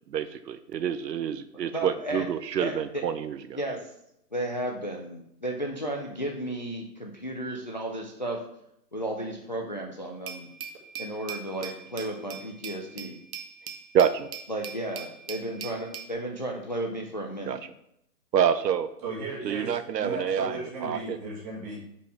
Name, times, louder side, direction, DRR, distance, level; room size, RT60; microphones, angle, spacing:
voice 1, 0.1-3.6 13.9-14.3 17.5-17.6 18.3-18.9 19.4-21.2, right 8 dB, 85° right, 12 dB, 0.7 m, -27 dB
voice 2, 1.7-2.2 2.6-3.0 3.6-3.9 4.3-8.4 8.9-10.5 11.0-13.2 14.5-17.6, right 1 dB, 30° left, 1 dB, 0.4 m, -33 dB
Glass, 10.3-16.1, right 7 dB, 65° right, 1.1 m, -41 dB
voice 3, 19.0-21.8, right 2 dB, 25° right, -3 dB, 1.9 m, -36 dB
5.5 x 4.4 x 4.7 m, 0.77 s
hypercardioid pair, 155°, 48 cm